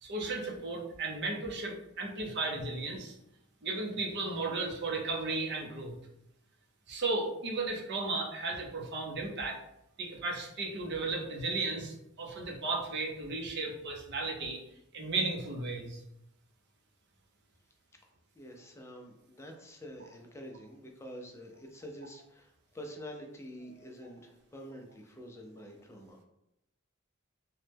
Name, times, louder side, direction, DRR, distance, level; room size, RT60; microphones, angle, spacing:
voice 1, 0.0-3.1 3.6-6.0 6.9-9.6 10.0-14.6 14.9-16.0, right 3 dB, 55° right, 1 dB, 0.6 m, -35 dB
voice 2, 18.3-26.2, equal, 15° left, 2 dB, 0.4 m, -47 dB
3.0 x 2.1 x 3.3 m, 0.83 s
head